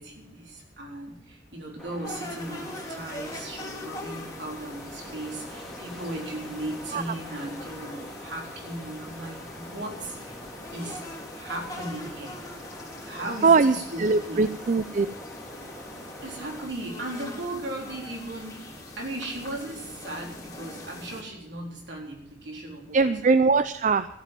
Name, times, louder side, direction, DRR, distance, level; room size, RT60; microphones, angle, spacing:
voice 1, 0.0-10.4 10.7-12.4 13.0-14.5 16.2-23.1 23.5-23.6, right 1 dB, 65° right, 0 dB, 3.9 m, -37 dB
Wind, 1.8-16.6, equal, ahead, 3.8 m, -44 dB
sound 1, 2.0-21.2, left 2 dB, 20° left, 3.4 m, -42 dB
voice 2, 13.4-15.1 22.9-24.1, right 4 dB, 45° right, 13 dB, 0.5 m, -21 dB
14.0 x 8.5 x 9.1 m, 0.79 s
head